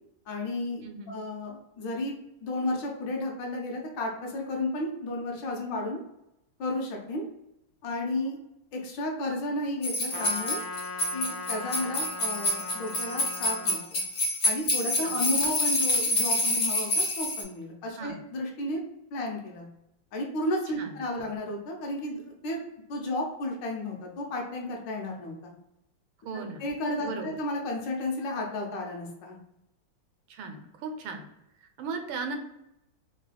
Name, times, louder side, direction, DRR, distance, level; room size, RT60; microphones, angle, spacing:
voice 1, 0.3-2.2 2.4-6.0 6.6-7.2 7.8-8.4 8.7-10.6 11.1-14.0 14.4-18.8 19.1-19.7 20.1-22.6 22.9-25.5 26.3-29.4, left 1 dB, 70° left, 0 dB, 1.4 m, -33 dB
voice 2, 0.8-1.2 15.0-15.5 18.0-18.2 20.7-21.3 26.2-26.6 27.0-27.4 30.3-31.2 31.6-32.4, right 4 dB, 90° right, 5 dB, 1.4 m, -38 dB
sound 1, 9.8-17.4, left 1 dB, 50° left, 0.9 m, -27 dB
Trumpet, 10.1-13.8, left 2 dB, 90° left, 1.4 m, -38 dB
3.6 x 2.2 x 3.2 m, 0.85 s
omnidirectional pair, 2.2 m